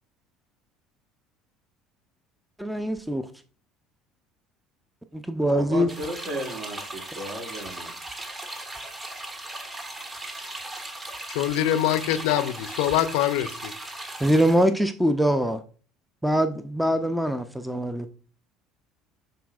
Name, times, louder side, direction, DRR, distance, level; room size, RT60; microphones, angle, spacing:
voice 1, 2.6-3.2 5.1-5.9 14.2-15.6 16.2-18.1, equal, 5° right, 10 dB, 0.5 m, -23 dB
voice 2, 5.5-7.9, right 1 dB, 55° right, 1 dB, 2.4 m, -34 dB
sound 1, 5.9-14.7, right 1 dB, 25° right, 1.4 m, -37 dB
voice 3, 11.3-13.7, left 12 dB, 75° left, 13 dB, 0.4 m, -24 dB
10.0 x 4.0 x 2.4 m, 0.40 s
hypercardioid pair, 70°, 0 cm